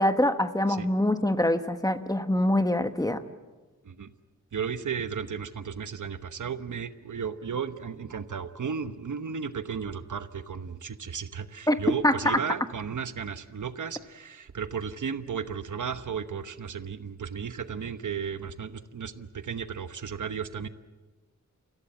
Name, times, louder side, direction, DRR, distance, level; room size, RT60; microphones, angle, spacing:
voice 1, 0.0-3.2 11.7-11.8 12.0-12.4, left 1 dB, 10° left, 9 dB, 1.2 m, -24 dB
voice 2, 4.5-20.7, right 6 dB, 75° right, 11 dB, 1.1 m, -34 dB
29.5 x 16.5 x 8.3 m, 1.2 s
wide cardioid pair, 100°, 30 cm